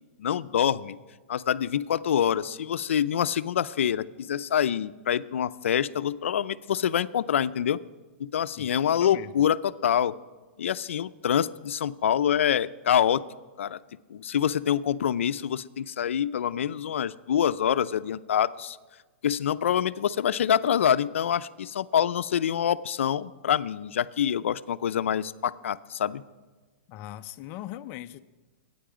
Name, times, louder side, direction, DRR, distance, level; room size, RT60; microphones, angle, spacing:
voice 1, 0.2-1.0 1.3-7.8 8.2-10.1 10.6-13.2 13.6-13.8 14.1-18.8 19.2-26.2, left 9 dB, 80° left, 15 dB, 0.6 m, -26 dB
voice 2, 8.5-9.5 26.9-28.2, left 13 dB, 30° left, 10 dB, 0.6 m, -40 dB
25.0 x 9.5 x 5.0 m, 1.3 s
hypercardioid pair, 150°, 7 cm